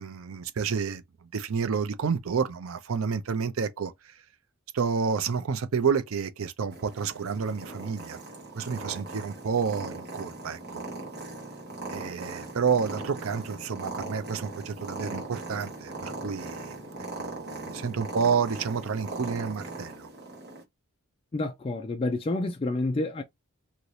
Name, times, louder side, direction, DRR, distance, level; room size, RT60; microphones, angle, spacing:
voice 1, 0.0-3.9 4.7-8.2 8.5-10.8 11.9-16.7 17.2-20.1, right 6 dB, 65° right, 0.5 m, -30 dB
Purr, 6.7-20.6, right 2 dB, 50° right, 1.3 m, -39 dB
voice 2, 21.3-23.2, left 2 dB, 25° left, 0.3 m, -29 dB
2.8 x 2.6 x 3.1 m
head